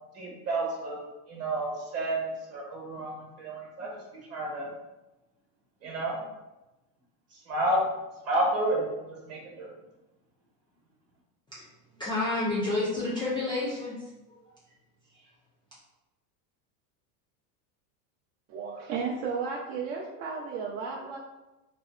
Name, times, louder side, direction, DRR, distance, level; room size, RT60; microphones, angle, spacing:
voice 1, 0.1-1.0 1.3-3.9 4.3-4.7 5.8-6.2 7.3-7.8 8.2-9.7, right 1 dB, 35° right, -2 dB, 1.0 m, -30 dB
voice 2, 12.0-14.4, left 2 dB, 10° left, -8 dB, 0.3 m, -30 dB
voice 3, 18.5-21.2, right 5 dB, 55° right, -1 dB, 0.5 m, -33 dB
2.6 x 2.1 x 2.3 m, 1.0 s
supercardioid pair, 110°, 45 cm